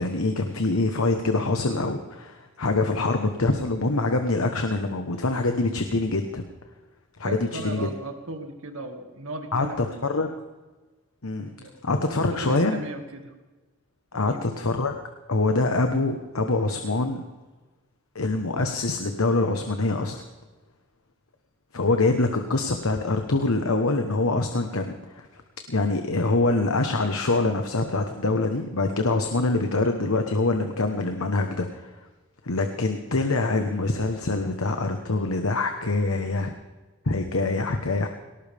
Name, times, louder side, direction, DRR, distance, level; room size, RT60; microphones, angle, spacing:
voice 1, 0.0-6.4 7.2-7.9 9.5-10.3 11.2-11.5 11.8-12.8 14.1-14.9 15.3-17.2 18.1-20.2 21.7-25.4 25.7-31.9 32.4-36.5 37.1-38.1, left 2 dB, 90° left, 6 dB, 1.2 m, -25 dB
voice 2, 7.2-10.3 11.6-11.7 12.0-13.3 14.1-14.4, right 2 dB, 85° right, 5 dB, 2.2 m, -37 dB
19.0 x 18.5 x 3.6 m, 1.2 s
head